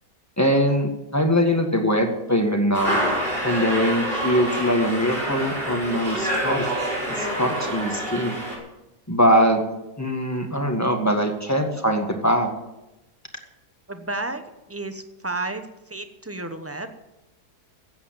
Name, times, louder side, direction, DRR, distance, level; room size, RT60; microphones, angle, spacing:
voice 1, 0.4-3.0 3.4-6.6 7.1-8.4 9.1-9.6 10.0-12.5, equal, 10° left, 4 dB, 1.6 m, -22 dB
sound 1, 2.7-8.6, right 1 dB, 35° right, 5.3 m, -27 dB
voice 2, 13.9-14.4 14.7-16.9, right 2 dB, 10° right, 8 dB, 0.7 m, -32 dB
15.5 x 8.6 x 7.5 m, 0.97 s
omnidirectional pair, 1.7 m